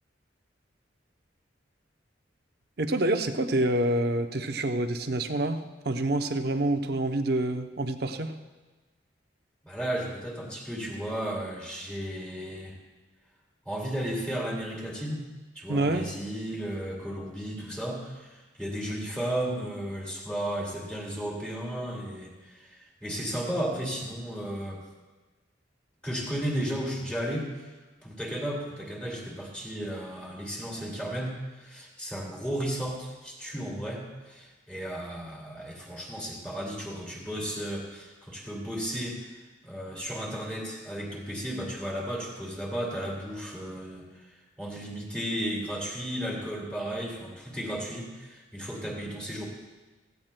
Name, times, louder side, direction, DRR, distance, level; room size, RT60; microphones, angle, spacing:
voice 1, 2.8-8.3 15.7-16.1, right 1 dB, 55° right, 7 dB, 0.7 m, -27 dB
voice 2, 9.6-12.8 13.7-15.3 15.5-24.8 26.0-27.7 28.0-39.2 39.6-49.5, right 1 dB, 5° left, -2 dB, 2.2 m, -34 dB
16.5 x 15.0 x 2.2 m, 1.2 s
head